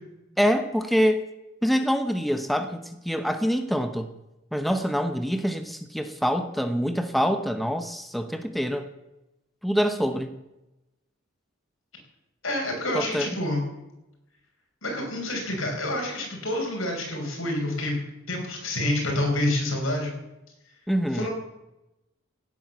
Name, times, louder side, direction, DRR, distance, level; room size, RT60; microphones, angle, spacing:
voice 1, 0.4-1.2 1.6-4.1 4.5-8.9 9.6-10.3 12.9-13.3 20.9-21.3, equal, ahead, 8 dB, 0.8 m, -25 dB
voice 2, 12.4-13.6 14.8-18.0 18.3-20.1 21.1-21.3, left 1 dB, 80° left, 1 dB, 5.7 m, -28 dB
16.5 x 9.4 x 7.1 m, 0.94 s
head